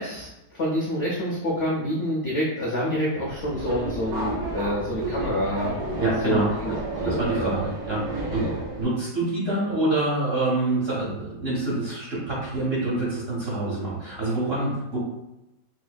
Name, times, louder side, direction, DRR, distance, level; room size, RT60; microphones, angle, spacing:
voice 1, 0.0-6.7 7.0-7.6 8.4-8.6, equal, 65° left, -5 dB, 0.6 m, -27 dB
Subway metro underground, 3.2-8.8, right 2 dB, 60° right, 1.3 m, -31 dB
voice 2, 6.0-6.5 7.0-8.5 8.8-15.0, right 2 dB, 45° right, -7 dB, 0.8 m, -26 dB
4.2 x 2.5 x 2.2 m, 0.92 s
omnidirectional pair, 1.9 m